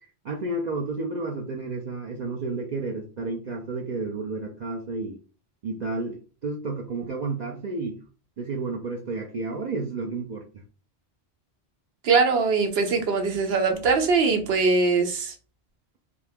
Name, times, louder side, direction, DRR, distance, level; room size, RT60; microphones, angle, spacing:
voice 1, 0.2-5.2 5.6-6.2 6.4-8.0 8.4-10.4, right 3 dB, 55° right, 0 dB, 0.5 m, -31 dB
voice 2, 12.0-15.3, right 4 dB, 70° right, 5 dB, 0.9 m, -22 dB
2.8 x 2.4 x 3.3 m, 0.36 s
omnidirectional pair, 1.1 m